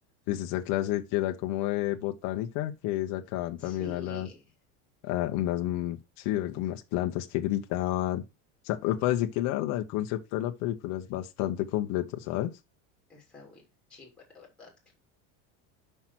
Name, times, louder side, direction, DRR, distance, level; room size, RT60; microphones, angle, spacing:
voice 1, 0.3-4.3 5.0-8.2 8.6-12.5, left 14 dB, 45° left, 0.9 m, -30 dB
voice 2, 3.6-4.4 13.1-13.6 13.9-14.9, left 2 dB, 5° left, 3.1 m, -48 dB
6.0 x 5.7 x 5.9 m
cardioid pair, 170°, 38 cm